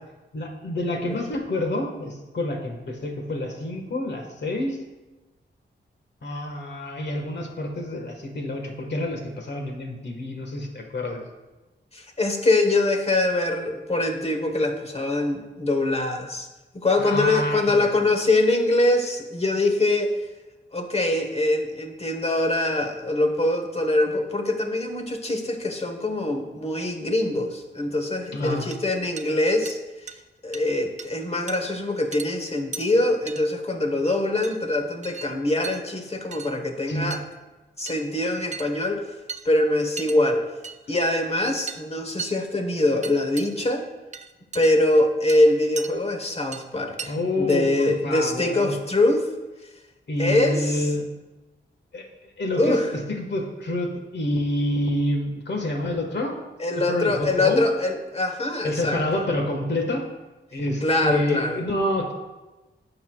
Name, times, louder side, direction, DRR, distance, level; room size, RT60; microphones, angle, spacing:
voice 1, 0.3-4.8 6.2-11.2 17.0-17.8 28.3-28.7 36.9-37.1 47.1-48.7 50.1-51.0 51.9-52.8 53.1-56.4 56.8-57.7 58.6-60.0 60.5-62.1, left 1 dB, 65° left, 2 dB, 1.5 m, -28 dB
voice 2, 11.9-16.5 16.8-20.1 20.7-30.1 30.4-37.2 37.8-39.0 39.4-40.4 40.9-43.8 44.5-49.3 50.2-50.9 52.6-52.9 56.6-59.2 60.8-61.6, left 2 dB, 30° left, 4 dB, 1.2 m, -23 dB
sound 1, 28.3-28.4 28.7-28.9 29.2-29.3 29.7-29.8 30.1-30.2 30.5-30.7 31.0-31.1 31.5-31.6 32.1-32.3 32.7-32.9 33.3-33.4 34.4-34.6 35.0-35.3 35.6-35.8 36.3-36.5 37.1-37.3 37.9-38.1 38.5-38.9 39.3-39.5 40.0-40.2 40.6-40.8 41.7-41.8 42.2-42.4 43.0-43.5 44.1-44.7 45.3-45.9 46.5-46.7 47.0-47.1 47.5-47.6, right 5 dB, 40° right, 0.5 m, -36 dB
16.0 x 5.8 x 2.4 m, 1.1 s
wide cardioid pair, 115°, 19 cm